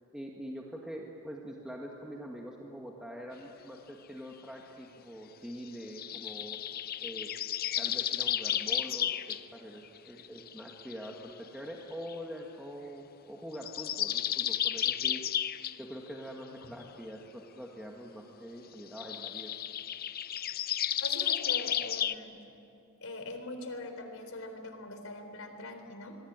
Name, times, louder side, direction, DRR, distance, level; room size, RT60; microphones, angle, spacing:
voice 1, 0.1-6.6 7.0-7.3 7.8-15.2 15.8-19.5, equal, 5° right, -1 dB, 1.8 m, -44 dB
sound 1, 5.9-9.4 10.0-11.1 12.1-12.2 13.5-15.8 19.0-22.1, left 10 dB, 45° left, 0.6 m, -32 dB
voice 2, 21.0-22.4 23.0-26.2, left 2 dB, 75° left, 6 dB, 3.8 m, -42 dB
27.0 x 22.0 x 8.9 m, 2.8 s
head